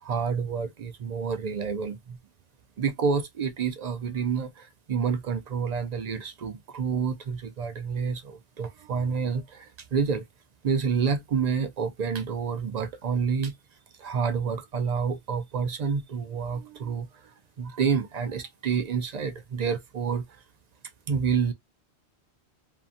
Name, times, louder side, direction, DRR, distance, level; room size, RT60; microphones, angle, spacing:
voice 1, 0.0-2.2 2.8-10.2 10.6-13.5 14.0-17.1 17.6-20.2 21.1-21.5, right 6 dB, 55° right, 0.4 m, -28 dB
2.7 x 2.5 x 2.5 m
omnidirectional pair, 1.1 m